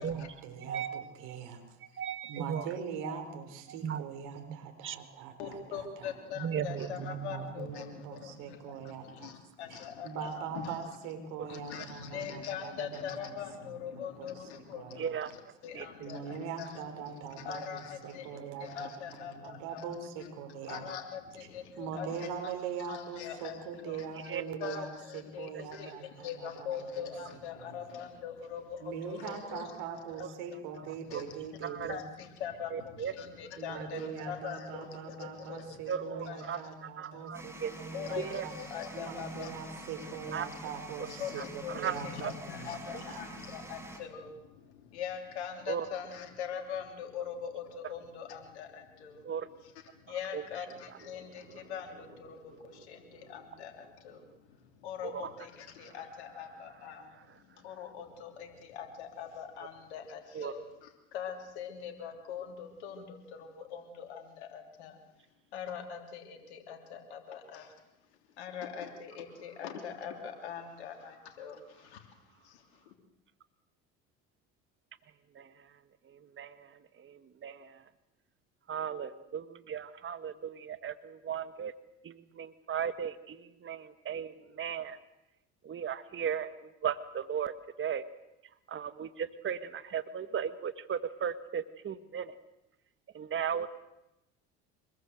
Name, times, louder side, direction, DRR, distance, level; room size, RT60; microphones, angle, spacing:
voice 1, 0.0-1.6 1.9-2.0 2.3-6.1 7.3-9.3 9.7-13.3 13.7-13.8 14.2-15.2 16.0-18.9 19.3-20.8 21.8-27.1 27.6-27.7 28.8-32.0 33.6-38.6 38.9-43.2, right 6 dB, 70° right, 5 dB, 5.0 m, -42 dB
voice 2, 0.6-1.1 2.0-2.6 3.0-3.2 3.8-4.0 4.8-5.0 6.4-7.3 11.7-11.9 15.0-15.3 15.7-16.1 24.3-24.4 25.8-25.9 30.2-30.3 31.6-31.9 32.7-33.1 33.9-34.1 35.9-36.6 37.0-37.7 38.2-38.4 40.3-40.5 41.7-42.3 42.9-43.0 45.7-45.8 49.2-49.5 50.3-50.4 55.0-55.2 60.3-60.5 75.3-75.5 76.4-76.7 77.0-77.8 78.7-81.7 82.0-85.0 85.6-87.5 87.8-88.0 88.7-92.3 93.1-93.7, right 8 dB, 40° right, 11 dB, 1.7 m, -36 dB
voice 3, 5.4-10.8 11.5-15.0 15.3-19.9 20.2-20.3 20.6-22.5 22.8-24.3 24.6-29.8 31.1-31.4 31.8-36.6 37.1-37.3 37.9-40.1 41.1-49.3 49.6-65.0 65.5-67.7 68.4-72.1 72.4-72.9, left 7 dB, 85° left, 4 dB, 3.1 m, -42 dB
sound 1, 37.3-44.0, equal, 10° right, 6.2 m, -47 dB
25.5 x 21.0 x 7.8 m, 0.91 s
hypercardioid pair, 75°, 33 cm